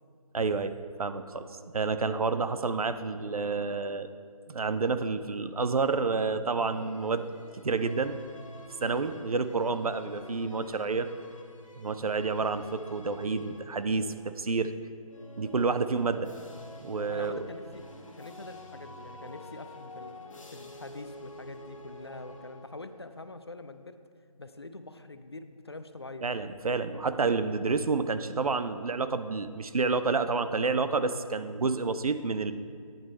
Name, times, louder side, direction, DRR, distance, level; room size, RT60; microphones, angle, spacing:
voice 1, 0.3-1.5 1.7-4.1 4.5-7.2 7.6-8.2 8.8-11.1 11.8-14.1 14.4-14.7 15.4-16.3 16.8-17.4 26.2-32.5, right 4 dB, 75° right, 11 dB, 0.6 m, -29 dB
sound 1, 6.6-14.5 15.0-23.0, left 1 dB, 60° left, 0.9 m, -49 dB
voice 2, 17.1-17.8 18.2-20.2 20.5-24.0 24.4-26.3, left 2 dB, 45° left, 10 dB, 0.4 m, -44 dB
8.7 x 6.1 x 4.1 m, 2.3 s
figure-of-eight pair, 175°, 19 cm